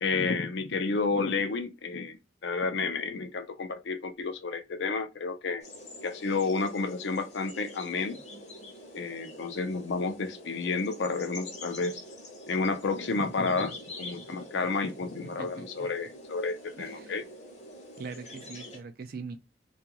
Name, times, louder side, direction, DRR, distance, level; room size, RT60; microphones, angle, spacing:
voice 1, 0.0-2.2 2.4-5.6 6.0-8.2 8.9-12.0 12.5-17.2, left 4 dB, 75° left, 0.5 m, -31 dB
sound 1, 5.6-18.8, left 1 dB, 35° left, 0.7 m, -46 dB
voice 2, 15.2-15.9 16.7-17.2 18.0-19.4, right 4 dB, 50° right, 0.4 m, -42 dB
2.4 x 2.3 x 2.8 m
head